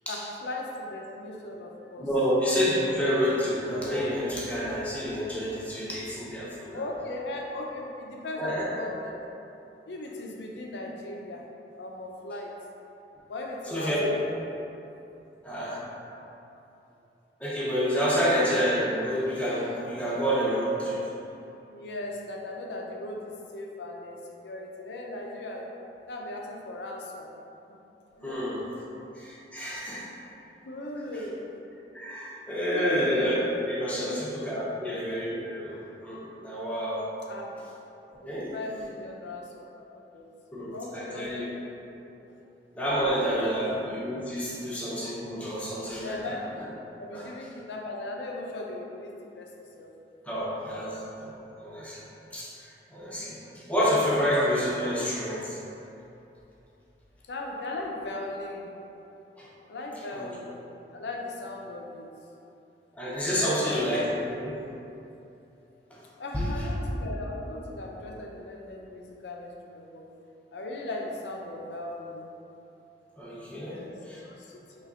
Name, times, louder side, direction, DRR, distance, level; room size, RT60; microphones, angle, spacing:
voice 1, 0.1-2.1 6.7-9.2 9.9-11.4 11.8-12.5 13.3-14.4 18.1-18.3 21.7-24.2 24.4-25.7 26.1-27.3 27.7-27.8 28.1-28.9 30.6-31.5 32.7-33.4 34.0-34.3 37.3-37.5 38.2-40.3 40.7-41.7 43.2-43.5 44.6-44.7 46.0-46.4 47.0-49.9 53.1-53.6 57.3-58.7 59.7-60.6 60.9-62.1 63.2-63.7 66.2-70.0 70.5-72.3 73.6-74.0 74.2-74.9, left 2 dB, 80° left, 0 dB, 0.5 m, -38 dB
voice 2, 2.0-6.8 8.4-8.7 13.7-14.1 15.4-15.9 17.4-21.0 28.2-28.7 29.2-30.1 31.9-37.1 38.2-38.5 40.5-41.5 42.7-46.4 47.1-47.3 50.3-52.0 52.3-55.6 59.4-59.5 60.1-60.3 63.0-64.7 65.9-66.0 66.3-66.7 73.2-73.8 74.1-74.2, equal, 10° left, -7 dB, 0.6 m, -29 dB
5.0 x 3.1 x 2.4 m, 2.8 s
head